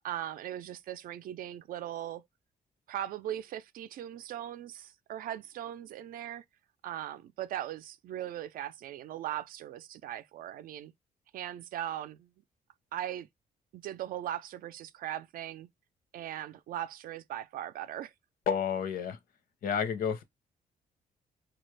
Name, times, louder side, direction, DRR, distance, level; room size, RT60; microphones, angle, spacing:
voice 1, 0.0-2.2 2.9-6.4 6.8-10.9 11.3-12.3 12.9-13.3 13.7-15.7 16.1-18.1, right 11 dB, 70° right, 0.4 m, -39 dB
voice 2, 18.5-19.2 19.6-20.2, left 7 dB, 75° left, 0.8 m, -30 dB
4.0 x 2.4 x 3.2 m
cardioid pair, 155°, 15 cm